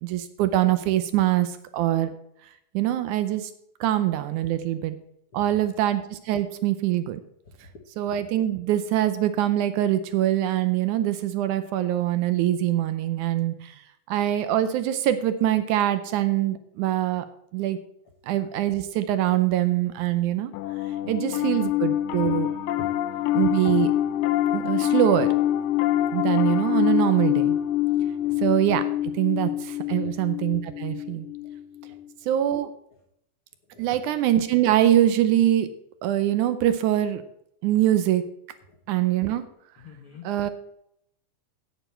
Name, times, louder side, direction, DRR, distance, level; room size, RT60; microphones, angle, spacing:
voice 1, 0.0-2.1 2.7-3.5 3.8-5.0 5.3-7.2 8.0-13.8 14.1-17.2 17.5-17.8 18.2-20.5 21.1-22.5 23.3-23.9 24.5-25.3 26.1-27.6 28.4-28.8 29.1-31.3 32.2-32.7 33.8-35.7 36.0-37.2 37.6-38.2 38.9-39.4 40.2-40.5, right 12 dB, 75° right, 11 dB, 1.8 m, -23 dB
Piano, 20.5-32.0, left 13 dB, 80° left, 2.2 m, -25 dB
voice 2, 22.8-23.3 28.2-28.4 29.9-30.1 31.8-32.0 32.3-32.7 33.7-34.0 38.7-38.8 39.8-40.3, left 3 dB, 60° left, 0 dB, 1.5 m, -47 dB
9.2 x 9.1 x 4.4 m, 0.74 s
omnidirectional pair, 4.0 m